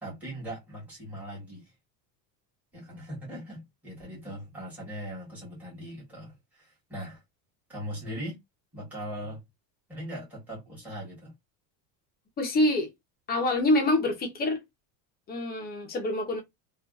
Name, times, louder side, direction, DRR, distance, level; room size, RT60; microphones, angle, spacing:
voice 1, 0.0-1.7 2.7-7.2 7.7-8.4 8.7-9.4 9.9-11.3, equal, 5° right, 1.3 m, -40 dB
voice 2, 12.4-12.9 13.3-14.6 15.3-16.4, left 1 dB, 20° left, 0.6 m, -26 dB
2.7 x 2.4 x 2.3 m
cardioid pair, 155°, 45 cm